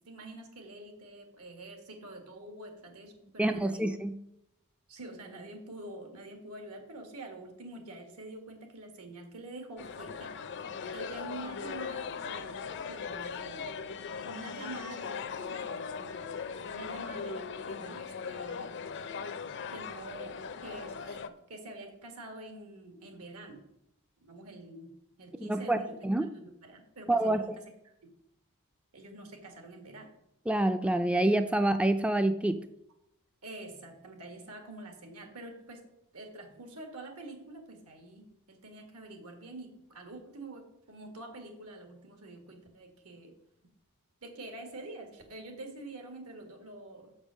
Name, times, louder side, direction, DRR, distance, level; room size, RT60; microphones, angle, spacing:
voice 1, 0.1-3.8 4.9-10.3 10.9-13.8 14.2-16.3 16.6-18.9 19.7-21.2 21.5-23.6 24.2-28.1 28.9-30.1 33.4-35.9 36.1-43.3 44.2-47.1, right 2 dB, 80° right, 5 dB, 1.8 m, -46 dB
voice 2, 3.4-4.1 25.3-26.3 27.1-27.6 30.5-32.6, right 1 dB, 5° right, 9 dB, 0.3 m, -27 dB
sound 1, 9.8-21.3, left 5 dB, 55° left, 0.5 m, -39 dB
7.0 x 5.4 x 6.2 m, 0.80 s
head